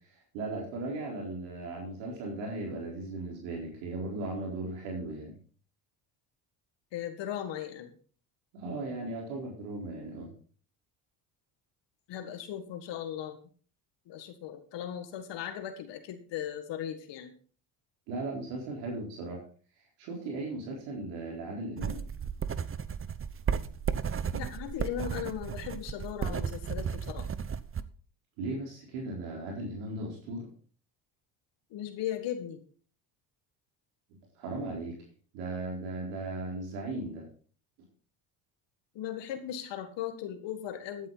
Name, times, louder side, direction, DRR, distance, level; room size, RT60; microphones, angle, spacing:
voice 1, 0.0-5.3 8.5-10.3 18.1-19.4 20.0-22.0 28.4-30.5 34.1-34.9 35.3-37.3, right 2 dB, 80° right, -1 dB, 4.2 m, -37 dB
voice 2, 6.9-7.9 12.1-13.4 14.1-17.3 24.3-27.3 31.7-32.6 39.0-41.1, left 10 dB, 65° left, 8 dB, 1.9 m, -37 dB
sound 1, 21.8-27.8, right 7 dB, 30° right, 0.8 m, -34 dB
14.0 x 9.5 x 4.0 m, 0.43 s
supercardioid pair, 75°, 46 cm